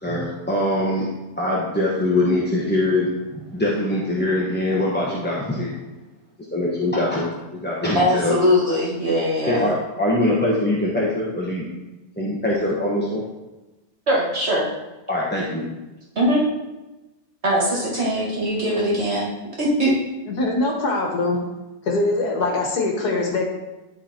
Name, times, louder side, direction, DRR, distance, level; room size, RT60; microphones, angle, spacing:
voice 1, 0.0-1.1 1.4-5.8 6.5-8.4 9.4-11.7 12.2-13.2 15.1-15.7, left 1 dB, 10° left, -6 dB, 0.9 m, -23 dB
voice 2, 8.0-9.7 14.1-14.7 16.2-16.4 17.4-19.3 19.6-19.9, equal, 40° right, -4 dB, 2.1 m, -21 dB
voice 3, 20.3-21.4 21.9-23.4, left 2 dB, 65° left, 1 dB, 1.8 m, -22 dB
11.0 x 4.0 x 4.4 m, 1.1 s
omnidirectional pair, 1.8 m